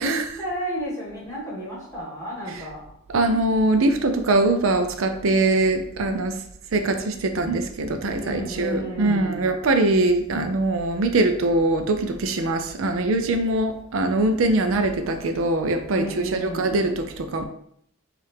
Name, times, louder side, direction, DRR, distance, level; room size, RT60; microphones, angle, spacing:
voice 1, 0.0-2.8 8.2-9.5 15.9-16.8, right 1 dB, 15° left, -5 dB, 1.5 m, -32 dB
voice 2, 3.1-6.4 6.7-17.4, right 2 dB, 70° right, 7 dB, 0.5 m, -22 dB
5.3 x 2.5 x 3.5 m, 0.69 s
head